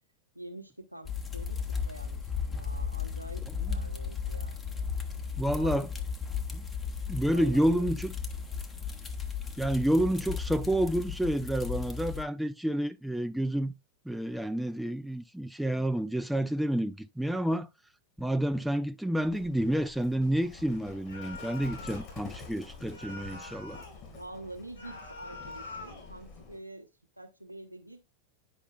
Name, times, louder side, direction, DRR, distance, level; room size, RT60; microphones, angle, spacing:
voice 1, 0.3-4.8 5.6-5.9 7.3-7.9 23.9-26.9 27.2-28.0, right 1 dB, 90° right, 1.0 m, -46 dB
sound 1, 1.1-12.2, left 6 dB, 15° left, 1.0 m, -35 dB
voice 2, 5.4-5.9 6.5-6.6 7.1-8.1 9.6-13.7 14.1-17.7 18.2-23.8, right 1 dB, ahead, 0.5 m, -29 dB
Livestock farm animals working animals, 19.2-26.6, left 5 dB, 45° left, 3.7 m, -48 dB
sound 2, 21.1-22.1 22.9-24.0 24.7-26.1, left 3 dB, 75° left, 1.9 m, -45 dB
10.0 x 5.4 x 2.3 m
figure-of-eight pair, 90°, 0 cm